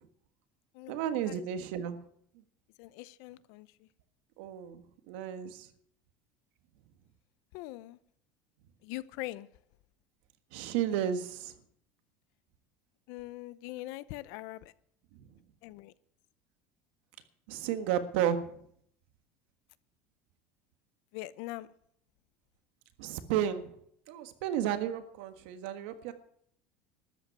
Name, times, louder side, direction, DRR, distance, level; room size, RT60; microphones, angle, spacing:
voice 1, 0.9-2.0 4.4-5.7 10.5-11.5 17.5-18.4 23.0-23.7 24.1-26.1, right 10 dB, 75° right, 1.6 m, -32 dB
voice 2, 2.8-3.9 7.5-8.0 8.8-9.5 13.1-14.7 15.6-15.9 21.1-21.7, left 18 dB, 65° left, 0.7 m, -42 dB
13.0 x 8.2 x 9.3 m
cardioid pair, 155°, 6 cm